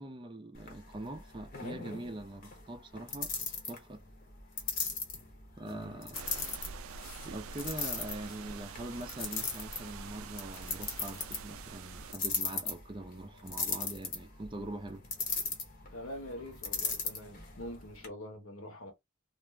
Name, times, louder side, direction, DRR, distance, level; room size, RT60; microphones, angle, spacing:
voice 1, 0.0-3.3 3.7-4.0 5.6-6.2 7.2-15.0, right 1 dB, 25° right, 0.4 m, -43 dB
sound 1, 0.5-18.1, left 4 dB, 40° left, 0.8 m, -39 dB
voice 2, 5.7-6.1 15.9-18.9, left 1 dB, 75° left, 1.1 m, -45 dB
sound 2, 6.1-12.1, right 5 dB, 80° right, 0.4 m, -46 dB
2.5 x 2.0 x 3.2 m
head